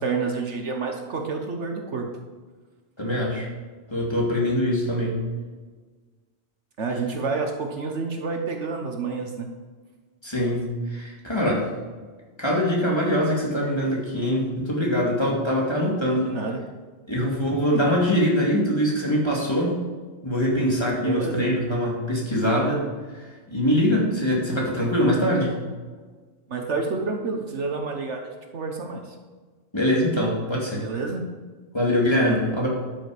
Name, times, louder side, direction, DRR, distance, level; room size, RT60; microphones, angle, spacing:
voice 1, 0.0-2.1 6.8-9.5 16.2-16.6 17.7-17.8 21.0-21.6 26.5-29.1 30.8-31.2, right 4 dB, 65° right, 3 dB, 1.4 m, -29 dB
voice 2, 3.0-3.5 3.9-5.2 10.2-11.7 12.4-16.3 17.1-19.8 20.2-22.9 23.1-25.6 29.7-30.8 31.7-32.7, equal, 20° left, -4 dB, 2.4 m, -23 dB
12.5 x 6.3 x 5.0 m, 1.4 s
omnidirectional pair, 1.3 m